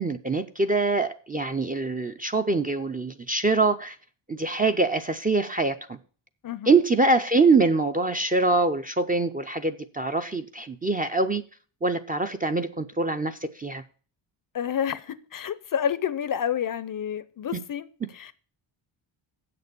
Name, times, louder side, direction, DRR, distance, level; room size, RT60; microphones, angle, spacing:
voice 1, 0.0-4.0 4.3-6.0 6.7-11.4 11.8-13.8, right 3 dB, 20° right, 0.4 m, -24 dB
voice 2, 6.4-6.7 14.5-18.3, left 9 dB, 45° left, 0.6 m, -29 dB
7.7 x 6.8 x 6.8 m
cardioid pair, 130°, 49 cm